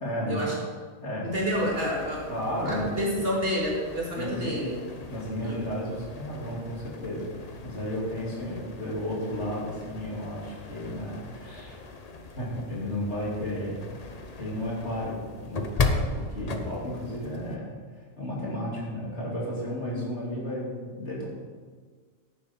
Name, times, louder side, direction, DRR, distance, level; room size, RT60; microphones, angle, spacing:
voice 1, 0.0-0.5 1.0-1.3 2.3-2.8 4.2-4.6 5.1-11.9 12.4-14.0 14.4-17.6 18.2-21.3, equal, 55° left, -5 dB, 3.1 m, -33 dB
voice 2, 1.2-2.4 2.7-4.8 5.4-5.6, equal, 45° right, -4 dB, 2.6 m, -29 dB
sound 1, 1.3-17.6, left 3 dB, 35° left, 0.7 m, -37 dB
11.0 x 9.3 x 4.4 m, 1.5 s
omnidirectional pair, 1.4 m